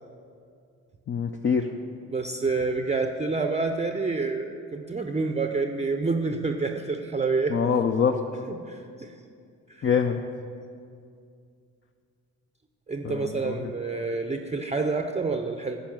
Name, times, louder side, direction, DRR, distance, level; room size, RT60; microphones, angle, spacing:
voice 1, 1.1-1.7 7.5-8.3 9.8-10.2 13.0-13.7, left 6 dB, 30° left, 5 dB, 0.5 m, -25 dB
voice 2, 2.1-7.5 8.6-9.1 9.7-9.9 12.9-15.8, right 3 dB, 15° right, 5 dB, 0.6 m, -28 dB
10.0 x 5.2 x 7.5 m, 2.4 s
hypercardioid pair, 45°, 40 cm